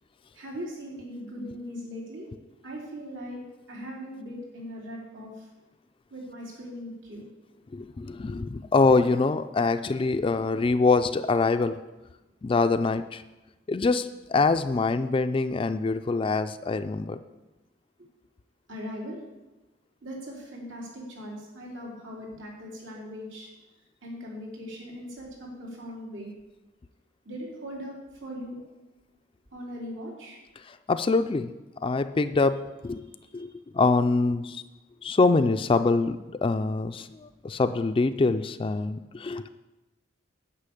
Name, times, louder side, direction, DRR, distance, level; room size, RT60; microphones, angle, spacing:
voice 1, 0.3-2.3 2.6-3.4 3.7-5.5 6.1-7.2 18.7-19.2 20.0-23.5 24.0-26.3 27.2-27.9 28.2-28.6 29.5-30.4, equal, 85° right, -3 dB, 3.0 m, -39 dB
voice 2, 7.7-11.8 12.4-13.2 13.7-17.2 30.6-31.5 31.8-33.1 33.3-34.6 35.0-39.5, left 3 dB, 30° left, 9 dB, 0.3 m, -24 dB
9.9 x 5.6 x 8.3 m, 1.1 s
head